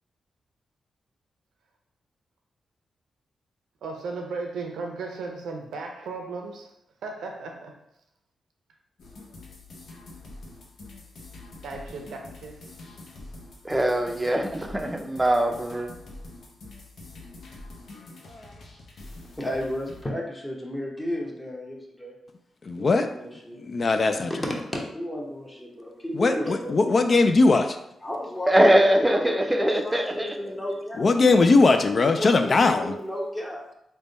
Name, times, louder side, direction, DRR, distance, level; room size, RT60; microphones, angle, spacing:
voice 1, 3.8-6.7 7.0-7.7 11.6-12.6, right 3 dB, 85° right, 0.5 m, -35 dB
sound 1, 9.0-20.1, left 2 dB, 70° left, 0.7 m, -45 dB
voice 2, 13.6-15.9 28.5-30.3, right 1 dB, 15° right, 0.5 m, -22 dB
voice 3, 19.4-22.1 22.8-23.6 24.3-24.4 24.7-26.7 28.0-31.4 32.1-33.7, left 1 dB, 20° left, 1.0 m, -33 dB
voice 4, 22.6-23.1 23.5-24.3 26.1-27.8 31.0-32.9, left 3 dB, 50° left, 0.3 m, -20 dB
3.4 x 2.1 x 4.0 m
cardioid pair, 55°, 0 cm